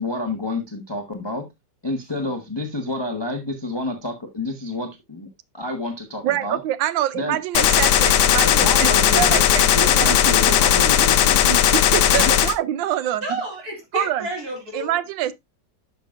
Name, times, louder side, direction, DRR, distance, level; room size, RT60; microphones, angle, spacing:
voice 1, 0.0-1.4 1.8-4.9 5.5-6.6 7.1-7.4 8.4-9.5 9.7-11.4 12.1-12.3, left 2 dB, 20° left, 0.8 m, -28 dB
voice 2, 6.2-9.7 9.9-10.7 11.4-13.2 13.9-14.3 14.7-15.3, right 12 dB, 75° right, 1.3 m, -25 dB
Gunshot gunfire, 7.5-12.5, left 10 dB, 75° left, 1.5 m, -17 dB
voice 3, 13.2-15.0, right 1 dB, 50° right, 3.1 m, -30 dB
10.5 x 5.8 x 2.5 m
omnidirectional pair, 2.2 m